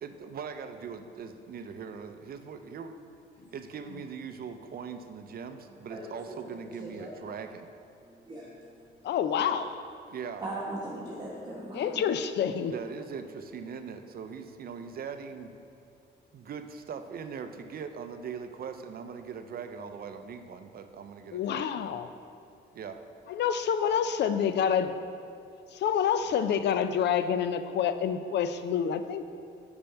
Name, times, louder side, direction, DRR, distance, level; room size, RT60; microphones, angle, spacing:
voice 1, 0.0-3.0 3.5-7.7 10.1-10.4 12.7-15.5 16.3-21.8 22.7-23.0, right 6 dB, 50° right, 8 dB, 0.5 m, -40 dB
voice 2, 5.9-6.4 6.8-7.2 8.1-9.1 10.4-12.1, right 1 dB, 20° right, -7 dB, 1.0 m, -40 dB
voice 3, 9.0-9.7 11.7-12.7 21.3-22.1 23.3-24.9 25.7-29.3, left 8 dB, 60° left, 10 dB, 0.4 m, -27 dB
5.2 x 4.4 x 5.6 m, 2.5 s
cardioid pair, 90°, 20 cm